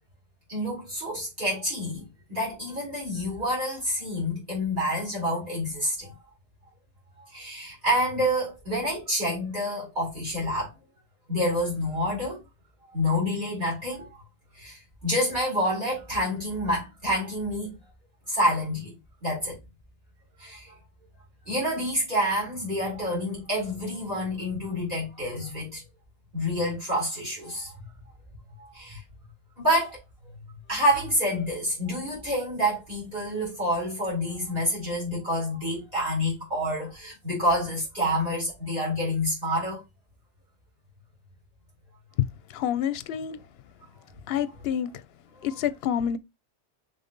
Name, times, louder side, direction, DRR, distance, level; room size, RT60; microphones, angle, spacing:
voice 1, 0.5-6.1 7.2-10.7 11.3-12.4 12.9-14.2 14.5-17.7 18.3-18.9 19.2-19.6 20.4-20.8 21.5-25.8 26.3-27.8 28.6-29.0 29.6-30.0 30.7-39.8, equal, 45° right, 2.6 m, -28 dB
voice 2, 42.5-43.4 44.3-44.9 45.4-46.2, left 9 dB, 65° left, 0.8 m, -28 dB
5.2 x 3.7 x 2.5 m
omnidirectional pair, 1.2 m